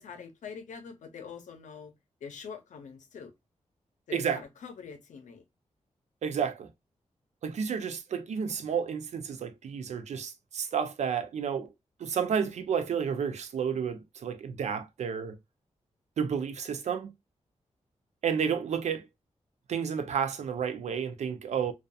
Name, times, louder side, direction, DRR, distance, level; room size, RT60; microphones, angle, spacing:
voice 1, 0.0-1.9 2.2-3.3 4.1-5.4, left 6 dB, 90° left, 0.6 m, -44 dB
voice 2, 6.2-6.7 7.4-11.7 12.0-15.4 16.2-17.1 18.2-19.1 19.7-21.7, right 7 dB, 70° right, 0.4 m, -31 dB
2.6 x 2.3 x 2.2 m
wide cardioid pair, 165°, 12 cm